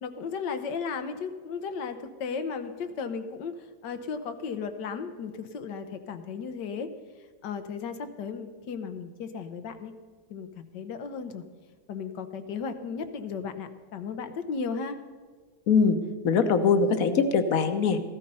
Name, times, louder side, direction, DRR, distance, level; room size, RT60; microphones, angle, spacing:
voice 1, 0.0-6.9 7.4-9.9 10.3-11.4 11.9-15.0, left 5 dB, 85° left, 9 dB, 1.6 m, -35 dB
voice 2, 15.7-16.0 16.2-18.0, left 5 dB, 60° left, 9 dB, 1.2 m, -22 dB
14.5 x 12.5 x 5.5 m, 1.5 s
omnidirectional pair, 1.8 m